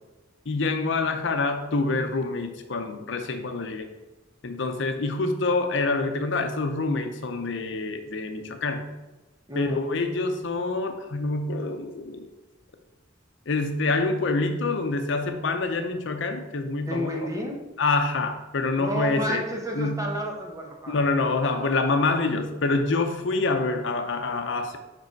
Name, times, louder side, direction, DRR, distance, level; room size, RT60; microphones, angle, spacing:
voice 1, 0.5-3.9 4.4-8.9 9.6-12.3 13.5-17.3 17.8-19.4 19.7-20.0 20.9-24.8, left 3 dB, 70° left, 6 dB, 0.7 m, -26 dB
voice 2, 9.5-9.8 16.9-17.6 18.8-21.0 21.6-21.7, equal, 15° right, 0 dB, 1.0 m, -31 dB
5.3 x 5.1 x 4.6 m, 1.1 s
head